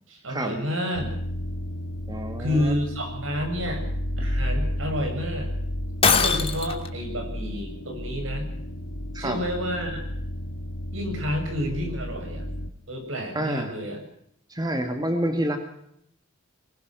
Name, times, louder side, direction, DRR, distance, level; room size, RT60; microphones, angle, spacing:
voice 1, 0.1-1.1 2.4-3.9 4.2-5.5 6.1-8.5 9.2-10.1 10.9-12.4 12.9-14.0, equal, 75° right, 5 dB, 7.5 m, -29 dB
sound 1, 0.9-12.7, left 1 dB, 75° left, 2.8 m, -32 dB
voice 2, 2.1-2.7 9.1-9.4 13.3-13.7 14.5-15.6, right 1 dB, 20° right, 6 dB, 2.1 m, -28 dB
Shatter, 6.0-6.9, left 6 dB, 30° left, 2.6 m, -21 dB
24.5 x 21.5 x 6.2 m, 0.73 s
head